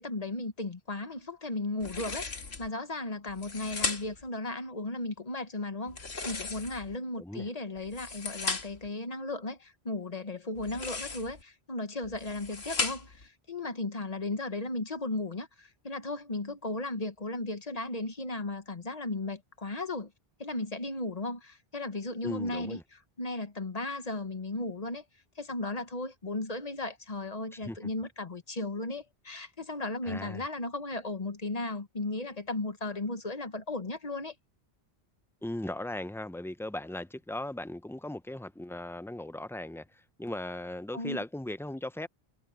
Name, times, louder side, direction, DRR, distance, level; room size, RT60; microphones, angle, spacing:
voice 1, 0.0-2.3 2.6-20.1 20.4-22.8 23.2-25.0 25.4-34.3 40.9-41.2, left 2 dB, 40° left, 1.3 m, -35 dB
sound 1, 1.8-2.7 3.3-4.3 5.9-7.0 7.8-8.9 10.5-11.4 12.0-13.2, left 4 dB, 80° left, 2.0 m, -36 dB
voice 2, 7.2-7.5 22.2-22.8 27.6-27.9 30.0-30.5 35.4-42.1, left 1 dB, 5° left, 0.3 m, -38 dB
omnidirectional pair, 1.0 m